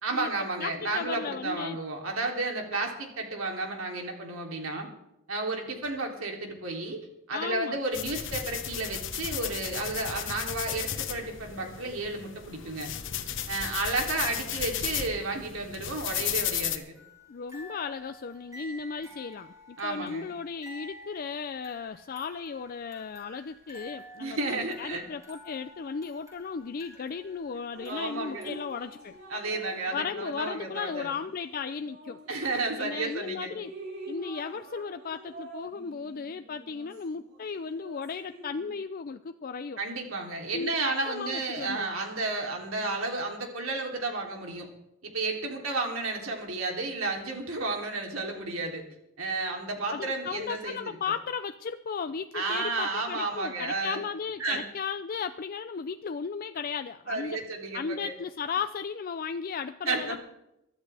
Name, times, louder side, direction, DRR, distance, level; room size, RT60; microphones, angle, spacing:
voice 1, 0.0-4.9 5.3-12.9 13.5-17.0 19.8-20.3 24.2-25.0 27.8-28.6 29.3-31.1 32.3-33.5 39.8-44.7 45.0-48.8 49.2-50.8 52.3-54.0 54.4-54.6 57.1-58.1 59.8-60.2, right 3 dB, 80° right, 1 dB, 3.1 m, -32 dB
voice 2, 0.6-1.8 7.3-7.8 17.3-29.2 29.9-32.2 32.8-33.7 34.1-39.8 40.5-41.9 49.9-57.4 57.7-60.2, left 5 dB, 45° left, 9 dB, 0.4 m, -35 dB
sound 1, 7.9-16.8, left 9 dB, 65° left, 1.2 m, -34 dB
sound 2, 16.9-29.3, left 1 dB, 15° right, 5.6 m, -50 dB
Drip, 27.7-33.0 33.4-38.8, right 2 dB, 60° right, 7.2 m, -47 dB
24.0 x 12.5 x 3.4 m, 0.85 s
head